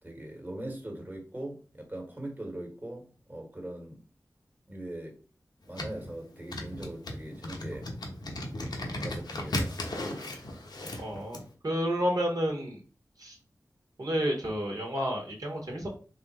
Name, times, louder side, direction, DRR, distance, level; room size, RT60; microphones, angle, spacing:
voice 1, 0.0-4.0 4.7-5.2 5.7-7.9 9.0-9.8 10.8-10.9, right 1 dB, 25° right, 1.5 m, -41 dB
sound 1, 5.7-11.4, left 1 dB, 85° left, 0.9 m, -36 dB
voice 2, 11.0-12.8 13.2-13.4 14.0-15.9, equal, 65° right, 1.3 m, -30 dB
3.7 x 2.5 x 4.2 m
cardioid pair, 45°, 7 cm